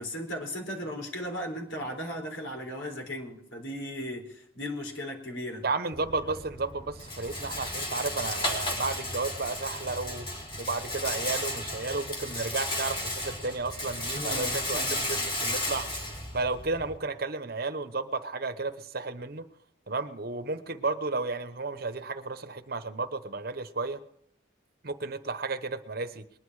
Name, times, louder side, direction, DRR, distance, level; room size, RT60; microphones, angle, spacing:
voice 1, 0.0-5.6 14.1-15.3, equal, 85° left, 2 dB, 4.1 m, -37 dB
voice 2, 5.6-19.5 19.9-24.0 24.8-26.2, right 3 dB, 50° right, 10 dB, 1.0 m, -33 dB
Rattle, 5.9-17.0, left 1 dB, 25° left, 3.2 m, -34 dB
21.0 x 10.5 x 4.8 m, 0.71 s
head